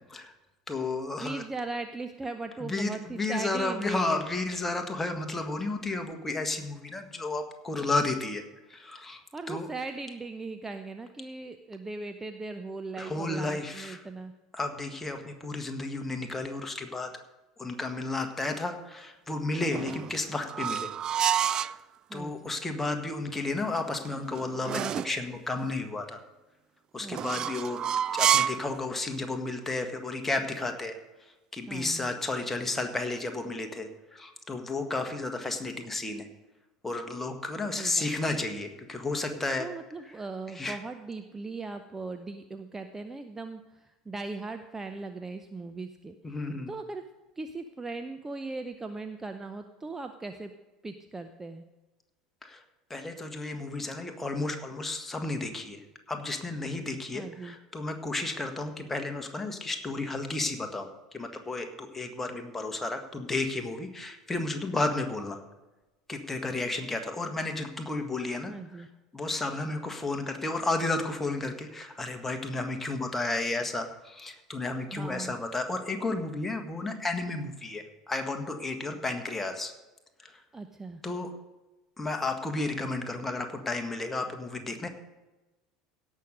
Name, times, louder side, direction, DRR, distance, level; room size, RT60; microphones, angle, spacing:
voice 1, 0.7-1.4 2.6-8.4 8.7-9.2 9.5-9.7 13.0-14.0 14.5-17.1 17.6-20.9 22.1-26.2 26.9-27.8 28.1-31.0 31.5-36.3 36.8-39.7 40.5-40.8 46.2-46.7 52.4-52.6 52.9-60.9 61.1-65.4 66.1-68.5 69.1-79.7 80.2-80.3 81.0-81.3 82.0-84.9, left 2 dB, 10° left, 5 dB, 1.7 m, -32 dB
voice 2, 1.2-4.3 9.3-14.3 22.1-22.6 27.0-27.5 31.7-32.1 37.7-38.4 39.6-46.2 46.7-47.0 47.4-50.5 50.8-51.6 57.1-57.6 68.5-68.9 74.9-75.4 80.5-81.0, right 3 dB, 15° right, 7 dB, 0.7 m, -39 dB
sound 1, 19.6-21.8 23.8-25.2 27.1-28.7, right 9 dB, 35° right, 0.3 m, -29 dB
17.0 x 6.5 x 5.3 m, 1.1 s
figure-of-eight pair, 70°, 2 cm